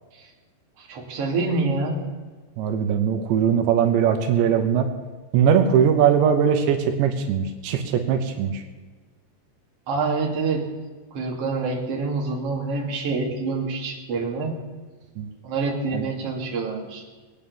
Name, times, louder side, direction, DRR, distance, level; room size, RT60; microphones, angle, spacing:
voice 1, 0.8-2.1 9.9-10.7 11.1-14.5 15.4-17.0, right 3 dB, 40° right, -1 dB, 3.0 m, -26 dB
voice 2, 2.6-4.9 5.3-8.6 15.2-15.3 15.9-16.1, right 8 dB, 80° right, 6 dB, 3.3 m, -20 dB
20.5 x 9.4 x 7.1 m, 1.3 s
omnidirectional pair, 5.1 m